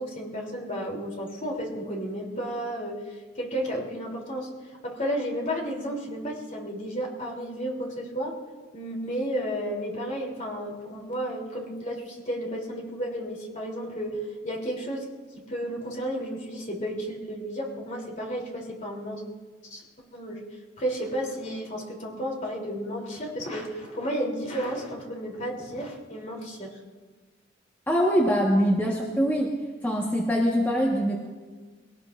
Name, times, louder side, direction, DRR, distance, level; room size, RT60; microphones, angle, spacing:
voice 1, 0.0-4.5 4.8-8.3 8.7-15.0 15.3-19.2 19.6-19.8 20.1-20.4 20.8-26.8 28.8-29.0, equal, 40° left, -2 dB, 3.3 m, -32 dB
voice 2, 27.9-29.5 29.8-31.1, equal, 10° left, -3 dB, 1.4 m, -23 dB
21.5 x 18.5 x 2.6 m, 1.4 s
head